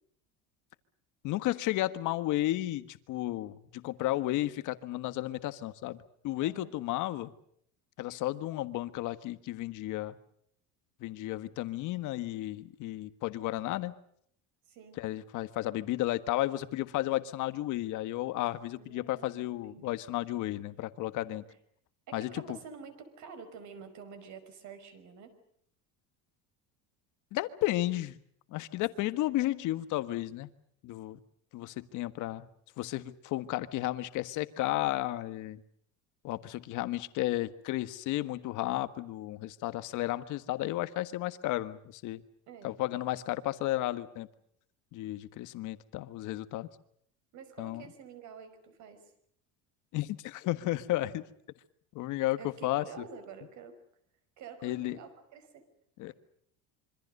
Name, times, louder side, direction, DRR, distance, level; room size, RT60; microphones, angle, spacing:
voice 1, 1.2-7.3 8.0-10.1 11.0-13.9 15.0-21.4 22.1-22.6 27.3-28.1 28.5-30.5 30.8-31.2 31.5-32.5 32.8-35.6 36.2-42.2 42.6-44.3 44.9-46.7 47.6-47.8 49.9-51.2 51.9-52.8 54.6-55.0 56.0-56.1, left 16 dB, 50° left, 12 dB, 1.5 m, -33 dB
voice 2, 6.4-6.7 14.7-15.0 18.8-20.0 21.3-21.4 22.1-25.3 42.5-42.8 47.3-49.1 52.4-53.8 54.4-55.7 56.1-56.2, right 6 dB, 50° right, 9 dB, 5.3 m, -49 dB
26.5 x 24.5 x 6.7 m, 0.67 s
cardioid pair, 165°, 37 cm